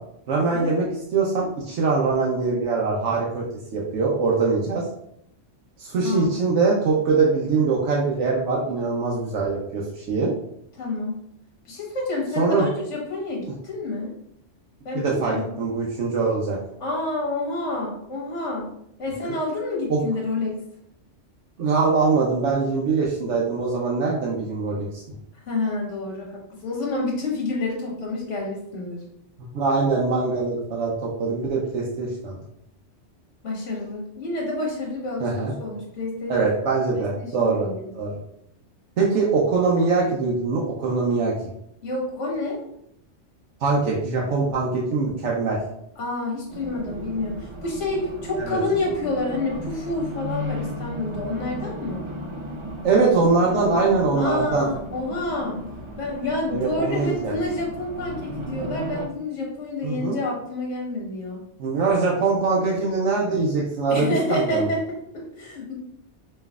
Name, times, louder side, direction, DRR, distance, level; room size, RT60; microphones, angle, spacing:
voice 1, 0.3-0.8 1.1-3.4 3.7-4.8 5.8-10.3 12.4-12.7 14.9-16.6 19.2-19.3 19.9-20.0 21.6-24.9 29.5-32.4 35.2-35.5 36.3-38.2 39.0-41.3 43.6-45.6 48.3-48.6 52.8-54.7 56.5-57.3 59.8-60.2 61.6-64.7, right 4 dB, 75° right, -3 dB, 1.0 m, -23 dB
voice 2, 6.0-6.4 10.7-11.2 11.6-14.1 14.8-15.5 16.8-18.7 19.0-20.6 25.4-29.0 33.4-36.3 36.9-37.9 41.8-42.6 46.0-52.0 54.1-55.7 56.0-61.4 63.9-65.7, left 2 dB, 80° left, -2 dB, 1.5 m, -28 dB
Race car auto racing, 46.5-59.1, equal, 55° right, 0.3 m, -35 dB
5.4 x 3.1 x 2.3 m, 0.75 s
omnidirectional pair, 1.2 m